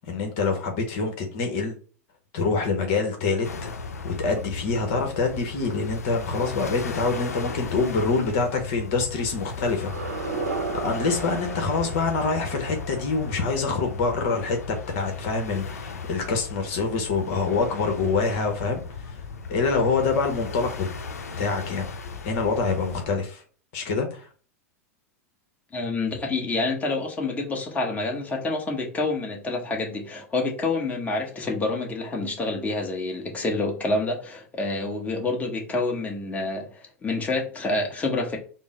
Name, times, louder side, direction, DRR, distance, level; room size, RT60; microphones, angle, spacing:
voice 1, 0.1-1.8 2.3-3.5 4.0-10.3 10.8-19.2 19.5-20.9 21.4-21.8 22.2-23.4 23.7-24.3, left 4 dB, 60° left, 3 dB, 0.9 m, -26 dB
sound 1, 3.4-23.1, left 4 dB, 80° left, 0.6 m, -36 dB
sound 2, 9.8-14.7, right 4 dB, 90° right, 0.7 m, -35 dB
voice 2, 25.7-38.4, left 2 dB, 20° left, 0 dB, 1.2 m, -28 dB
3.7 x 2.0 x 3.8 m, 0.40 s
hypercardioid pair, 90°, 8 cm